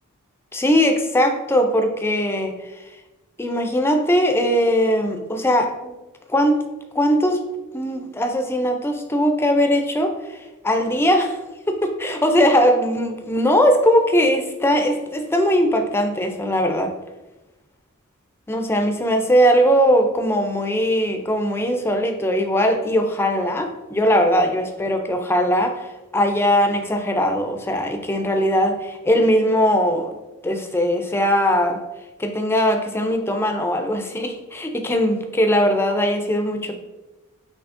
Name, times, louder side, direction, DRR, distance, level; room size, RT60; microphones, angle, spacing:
voice 1, 0.5-2.9 3.4-6.0 6.3-6.6 6.9-7.4 7.7-11.4 11.7-16.9 18.5-30.2 30.4-31.8 32.2-36.7, equal, 10° left, 5 dB, 0.3 m, -20 dB
5.9 x 2.7 x 2.5 m, 1.1 s
head